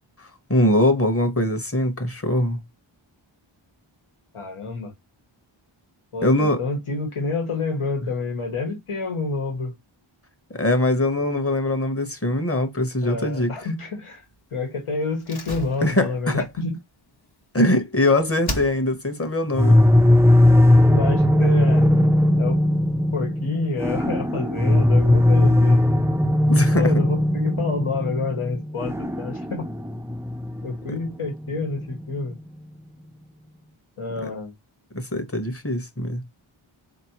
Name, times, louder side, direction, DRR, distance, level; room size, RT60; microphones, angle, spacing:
voice 1, 0.2-2.6 6.2-6.6 10.5-13.5 15.8-16.5 17.5-19.8 26.5-26.9 34.2-34.3 34.9-36.2, left 1 dB, 25° left, 1.1 m, -22 dB
voice 2, 4.3-4.9 6.1-9.7 13.0-14.2 14.5-16.8 20.9-21.9 22.4-22.6 23.1-25.8 26.7-29.7 30.6-32.4 34.0-34.5, left 3 dB, 85° left, 1.6 m, -28 dB
Slam, 15.2-18.0 18.4-19.2 19.5-19.6, left 1 dB, 50° left, 1.2 m, -35 dB
sound 1, 19.6-32.3, left 1 dB, 5° right, 0.4 m, -19 dB
4.2 x 2.9 x 2.9 m
wide cardioid pair, 60°, 50 cm